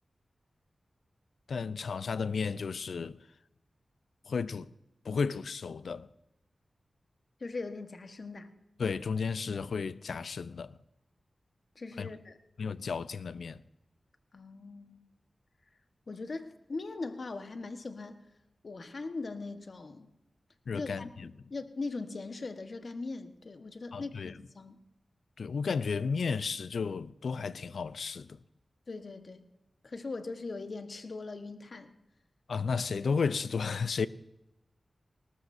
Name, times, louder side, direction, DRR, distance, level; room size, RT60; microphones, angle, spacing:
voice 1, 1.5-3.2 4.3-4.7 5.0-6.1 8.8-10.8 12.0-12.1 12.6-13.6 20.7-21.3 23.9-24.4 25.4-28.4 32.5-34.1, left 5 dB, 90° left, 0.5 m, -33 dB
voice 2, 7.4-8.5 11.7-12.4 14.3-15.0 16.1-18.2 18.6-20.1 20.7-24.8 28.9-29.5 29.8-31.9, left 3 dB, 60° left, 1.3 m, -40 dB
20.5 x 19.0 x 2.7 m
wide cardioid pair, 65°, 0 cm